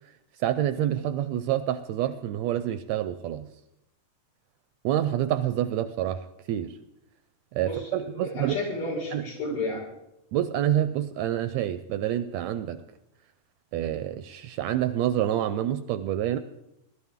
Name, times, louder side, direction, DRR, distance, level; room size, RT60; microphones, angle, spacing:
voice 1, 0.4-3.5 4.8-6.8 7.5-8.5 9.1-9.2 10.3-12.8 13.7-16.4, right 11 dB, 80° right, 11 dB, 1.7 m, -27 dB
voice 2, 7.6-9.8, left 2 dB, 65° left, -3 dB, 6.5 m, -32 dB
21.0 x 12.0 x 3.6 m, 0.83 s
omnidirectional pair, 3.5 m